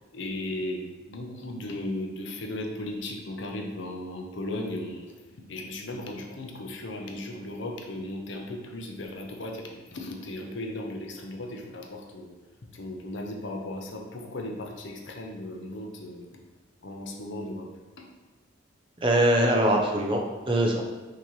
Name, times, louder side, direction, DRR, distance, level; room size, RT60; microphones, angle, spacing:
voice 1, 0.1-5.1 5.5-12.4 12.7-16.3 16.8-17.7 18.0-18.1, left 1 dB, 60° left, 2 dB, 0.6 m, -36 dB
voice 2, 19.0-20.8, right 1 dB, 25° right, 1 dB, 0.5 m, -22 dB
5.9 x 2.9 x 3.1 m, 1.2 s
head